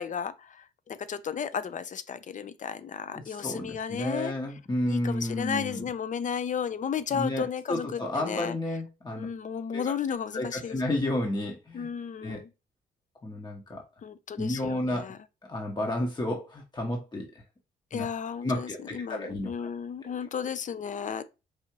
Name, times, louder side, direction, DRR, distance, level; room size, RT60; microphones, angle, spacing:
voice 1, 0.0-4.3 4.9-8.6 9.1-10.8 11.7-12.5 14.0-15.2 17.9-21.3, left 7 dB, 40° left, 0.5 m, -34 dB
voice 2, 3.1-5.9 7.1-9.3 9.7-9.9 10.3-11.9 12.2-12.4 13.2-13.8 14.4-15.1 15.5-17.3 17.9-18.1 18.4-19.5, left 1 dB, 20° left, 1.0 m, -31 dB
4.7 x 2.7 x 2.9 m
hypercardioid pair, 50°, 19 cm